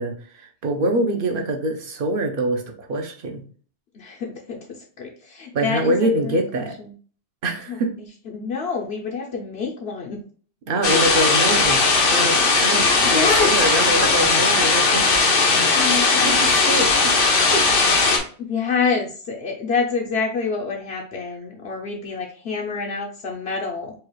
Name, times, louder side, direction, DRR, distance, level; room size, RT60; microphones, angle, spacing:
voice 1, 0.0-3.4 5.5-6.8 7.4-7.9 10.7-15.1 15.9-17.2 17.5-17.8, right 1 dB, 55° right, 4 dB, 0.8 m, -25 dB
voice 2, 3.9-4.6 5.0-6.4 7.7-7.8 8.3-10.2 13.0-13.5 15.6-16.4 18.4-23.9, left 5 dB, 65° left, 0 dB, 0.9 m, -27 dB
sound 1, 10.8-18.2, left 3 dB, 80° left, 1.2 m, -18 dB
4.7 x 2.3 x 3.0 m, 0.43 s
omnidirectional pair, 1.2 m